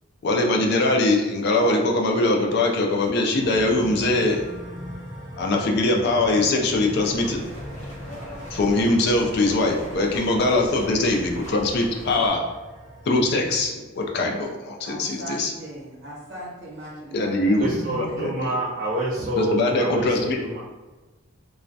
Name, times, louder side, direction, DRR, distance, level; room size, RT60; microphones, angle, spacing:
voice 1, 0.2-4.5 5.4-7.5 8.5-12.5 13.1-15.5 17.1-18.5 19.4-20.4, left 2 dB, 55° left, 1 dB, 0.4 m, -22 dB
sound 1, 3.4-13.7, equal, 5° right, 1.1 m, -40 dB
sound 2, 7.0-12.3, equal, 35° left, 0.7 m, -39 dB
voice 2, 14.8-18.5, right 1 dB, 60° right, -6 dB, 1.0 m, -39 dB
voice 3, 17.6-20.6, right 1 dB, 40° right, -5 dB, 0.3 m, -27 dB
2.2 x 2.1 x 2.6 m, 1.2 s
head